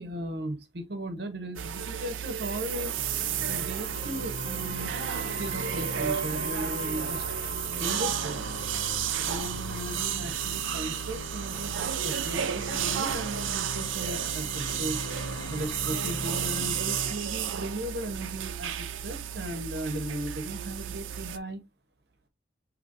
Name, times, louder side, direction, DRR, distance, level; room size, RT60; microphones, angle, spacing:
voice 1, 0.0-3.0 3.5-4.9 5.3-8.4 9.2-15.2 15.5-21.6, right 1 dB, 55° right, 0.9 m, -37 dB
sound 1, 1.6-21.4, right 9 dB, 90° right, 0.5 m, -32 dB
sound 2, 2.9-17.2, left 3 dB, 80° left, 0.7 m, -40 dB
6.7 x 3.1 x 2.5 m
head